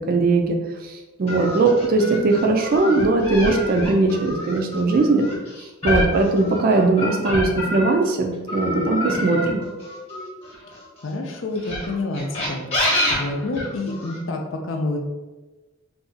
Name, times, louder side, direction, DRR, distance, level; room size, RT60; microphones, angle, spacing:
voice 1, 0.1-0.6 0.8-5.3 5.8-9.6, right 3 dB, 50° right, 3 dB, 0.4 m, -19 dB
sound 1, 1.3-8.1 8.5-10.9 11.6-14.2, left 1 dB, 30° left, 1.0 m, -27 dB
voice 2, 11.0-12.7 13.1-15.0, left 2 dB, 80° left, 2 dB, 0.5 m, -28 dB
2.6 x 2.3 x 3.8 m, 1.2 s
head